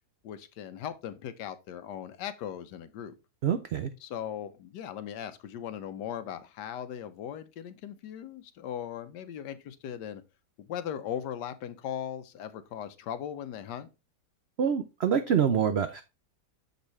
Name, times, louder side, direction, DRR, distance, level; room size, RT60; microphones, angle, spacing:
voice 1, 0.2-3.1 4.0-10.2 10.6-13.9, left 9 dB, 90° left, 1.3 m, -38 dB
voice 2, 3.4-3.9 14.6-16.0, right 8 dB, 90° right, 0.5 m, -26 dB
7.0 x 5.3 x 3.1 m
omnidirectional pair, 1.8 m